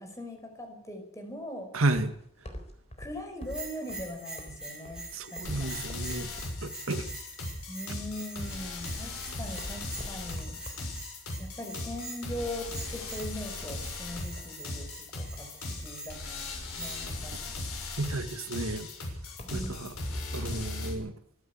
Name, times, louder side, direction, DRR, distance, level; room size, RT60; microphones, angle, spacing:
voice 1, 0.0-1.7 3.0-5.0 5.3-5.8 7.7-10.6 11.4-14.9 15.1-15.5 15.8-17.4 19.4-19.9, left 1 dB, 15° left, 4 dB, 5.4 m, -40 dB
voice 2, 1.7-2.1 5.1-6.3 6.6-7.1 18.0-18.9 19.5-19.9 20.3-21.1, right 2 dB, 75° right, 9 dB, 1.9 m, -32 dB
sound 1, 1.9-20.8, equal, 30° left, 4.0 m, -47 dB
Bell, 3.4-17.2, right 2 dB, 5° right, 7.2 m, -45 dB
sound 2, 5.4-20.9, left 2 dB, 85° left, 7.0 m, -38 dB
24.5 x 12.0 x 8.7 m, 0.70 s
head